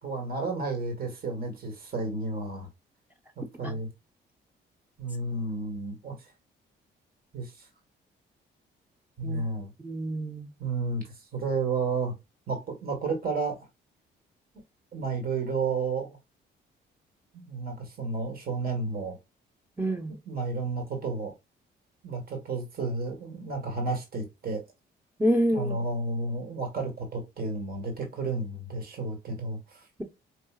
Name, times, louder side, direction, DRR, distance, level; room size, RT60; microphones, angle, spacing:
voice 1, 0.0-2.7 3.4-3.9 5.0-6.3 7.3-7.7 9.2-9.7 10.6-12.1 12.5-13.7 14.9-16.2 17.3-19.2 20.2-21.3 22.0-24.6 25.5-29.8, right 3 dB, 50° right, 1.7 m, -32 dB
voice 2, 9.8-10.5 19.8-20.2 25.2-25.7, equal, 10° right, 0.8 m, -27 dB
4.7 x 2.6 x 2.4 m
cardioid pair, 90°, 20 cm